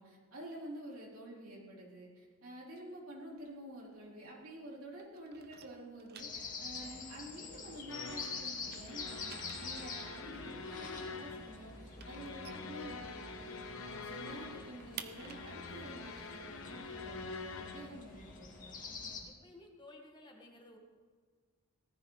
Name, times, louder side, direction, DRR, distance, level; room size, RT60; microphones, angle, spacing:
voice 1, 0.0-18.8, right 1 dB, 75° right, -4 dB, 3.9 m, -49 dB
sound 1, 3.2-4.7 4.9-8.2 8.5-13.5 13.8-13.9 14.2-17.9, right 8 dB, 50° right, 0.8 m, -54 dB
sound 2, 6.2-19.2, left 4 dB, 40° left, 2.4 m, -47 dB
sound 3, 7.9-17.9, left 4 dB, 65° left, 1.1 m, -46 dB
voice 2, 19.3-20.8, left 2 dB, 20° left, 1 dB, 1.8 m, -55 dB
18.5 x 13.5 x 4.1 m, 1.5 s
head